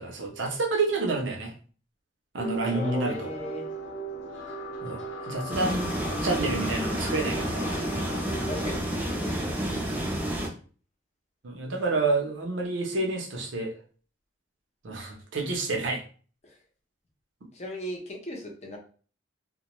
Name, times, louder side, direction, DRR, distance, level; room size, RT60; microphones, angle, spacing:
voice 1, 0.0-1.5 2.3-3.3 4.8-5.9 6.2-7.8 9.6-10.1 11.4-13.7 14.8-16.0, right 3 dB, 90° right, 0 dB, 0.7 m, -29 dB
sound 1, 2.4-8.8, right 1 dB, 80° left, 0.7 m, -37 dB
voice 2, 2.6-3.6 8.5-9.5 17.5-18.8, left 1 dB, 35° left, 0 dB, 0.6 m, -37 dB
sound 2, 5.5-10.5, right 1 dB, 10° right, 0.4 m, -30 dB
2.2 x 2.1 x 2.9 m, 0.40 s
head